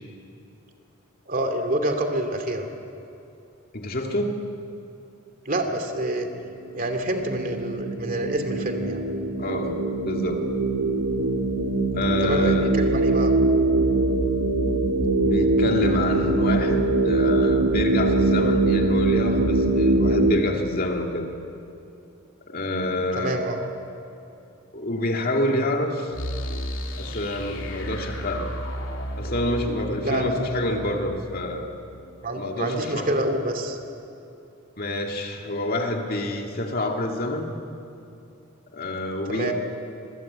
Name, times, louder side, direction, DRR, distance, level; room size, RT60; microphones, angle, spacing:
voice 1, 1.3-2.7 5.5-6.3 6.7-9.0 12.2-13.3 23.2-23.6 30.0-30.4 32.2-33.8 39.3-39.5, right 1 dB, 40° right, 5 dB, 2.6 m, -27 dB
voice 2, 3.7-4.4 9.4-9.8 10.0-10.5 11.9-12.8 15.2-21.3 22.5-23.4 24.7-26.1 27.0-28.5 29.2-31.7 32.4-33.1 34.8-37.5 38.7-39.5, left 1 dB, 45° left, 2 dB, 2.5 m, -27 dB
sound 1, 6.5-20.3, right 2 dB, 80° right, 2.3 m, -22 dB
sound 2, 26.1-32.9, equal, 65° left, 2.7 m, -34 dB
26.0 x 22.5 x 8.8 m, 2.7 s
head